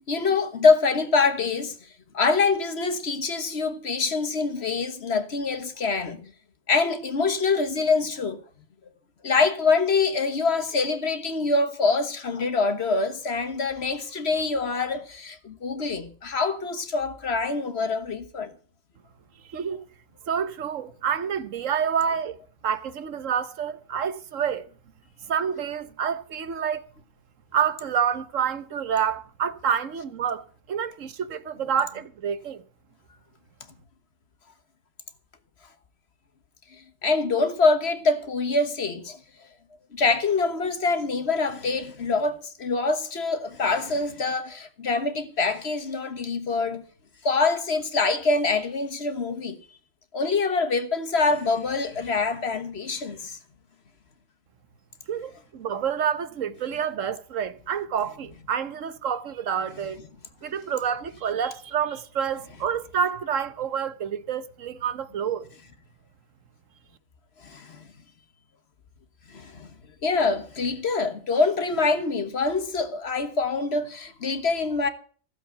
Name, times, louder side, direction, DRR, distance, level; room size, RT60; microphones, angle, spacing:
voice 1, 0.1-1.9 2.1-6.3 6.7-8.4 9.2-18.5 36.7-39.2 39.9-46.8 47.2-49.6 50.1-53.4 67.4-67.9 69.3-69.7 70.0-74.9, left 4 dB, 50° left, 1.5 m, -25 dB
voice 2, 20.3-22.4 22.6-24.7 25.3-26.9 27.5-32.6 55.1-60.0 60.4-65.5, right 8 dB, 70° right, 1.3 m, -28 dB
15.0 x 7.7 x 7.7 m
omnidirectional pair, 1.4 m